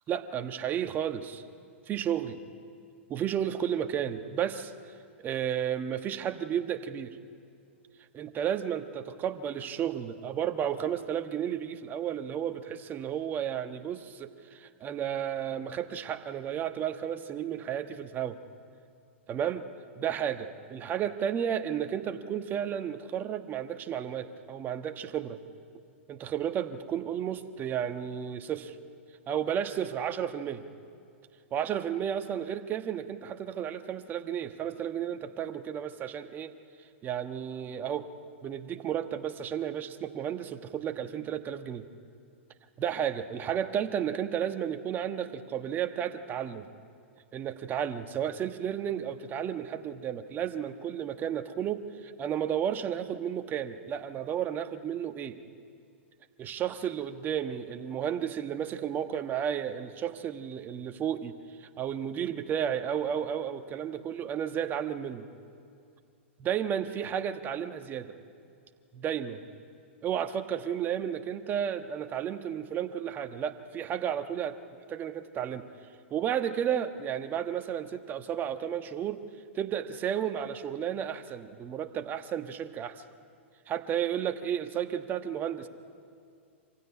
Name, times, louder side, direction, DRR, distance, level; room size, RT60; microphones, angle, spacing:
voice 1, 0.1-1.4 1.9-2.4 3.1-4.7 5.2-7.2 8.1-18.4 19.3-19.7 20.0-25.4 26.1-28.8 29.3-30.6 31.5-36.5 37.0-38.1 38.4-41.9 42.8-46.7 47.3-55.4 56.4-61.3 61.6-65.3 66.4-68.1 68.9-69.4 70.0-74.6 74.9-75.7 76.1-79.3 79.5-83.0 83.7-85.7, right 9 dB, 25° right, 8 dB, 1.3 m, -32 dB
25.0 x 16.0 x 9.8 m, 2.3 s
hypercardioid pair, 115°, 7 cm